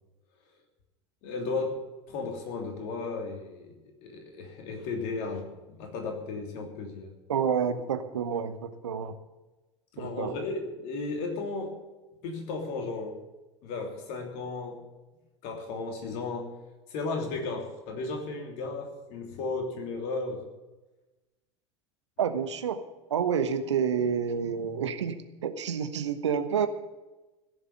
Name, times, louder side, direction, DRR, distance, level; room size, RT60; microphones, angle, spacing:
voice 1, 1.2-3.7 4.0-7.1 9.9-11.8 12.2-13.2 13.6-14.8 15.4-16.6 16.9-20.4, left 3 dB, 55° left, 3 dB, 3.0 m, -34 dB
voice 2, 7.3-9.2 10.0-10.3 22.2-22.8 23.1-26.7, right 7 dB, 75° right, 10 dB, 1.1 m, -29 dB
15.5 x 7.2 x 8.9 m, 1.1 s
figure-of-eight pair, 75°, 15 cm